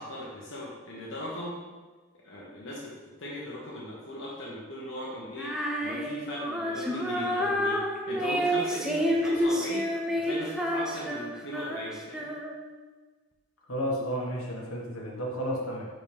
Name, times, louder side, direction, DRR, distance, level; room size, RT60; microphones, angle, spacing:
voice 1, 0.0-1.6 2.1-7.8 8.1-9.9 10.2-12.3, left 1 dB, 55° left, -5 dB, 1.2 m, -38 dB
Female singing, 5.4-12.7, equal, 5° right, 0.6 m, -29 dB
voice 2, 13.7-15.9, equal, 80° left, -2 dB, 1.5 m, -32 dB
10.5 x 4.1 x 3.4 m, 1.3 s
head